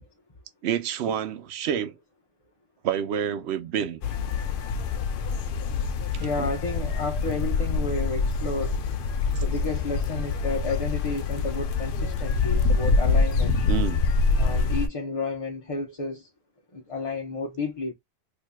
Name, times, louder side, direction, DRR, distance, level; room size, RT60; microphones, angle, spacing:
voice 1, 0.6-1.9 2.8-4.0 6.1-6.3 13.7-14.0, right 9 dB, 85° right, 0.9 m, -28 dB
sound 1, 4.0-14.9, left 4 dB, 60° left, 0.7 m, -25 dB
voice 2, 6.2-8.8 9.4-13.6 14.4-16.3 16.7-17.9, left 3 dB, 35° left, 0.9 m, -31 dB
4.4 x 2.7 x 2.2 m
omnidirectional pair, 1.1 m